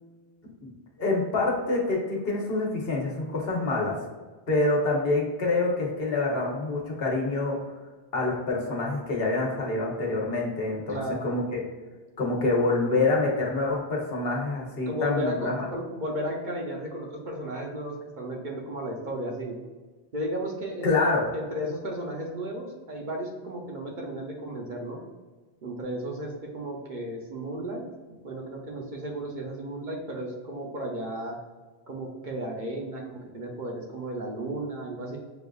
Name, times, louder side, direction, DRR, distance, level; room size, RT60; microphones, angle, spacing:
voice 1, 1.0-3.9 4.5-7.6 8.1-11.6 12.2-15.7 20.8-21.2, left 2 dB, 65° left, -2 dB, 1.1 m, -26 dB
voice 2, 10.9-11.3 14.9-19.6 20.1-25.0 25.6-27.8 28.1-31.4 31.9-35.2, right 1 dB, 50° right, -1 dB, 0.8 m, -34 dB
6.8 x 2.4 x 2.3 m, 1.3 s
omnidirectional pair, 1.1 m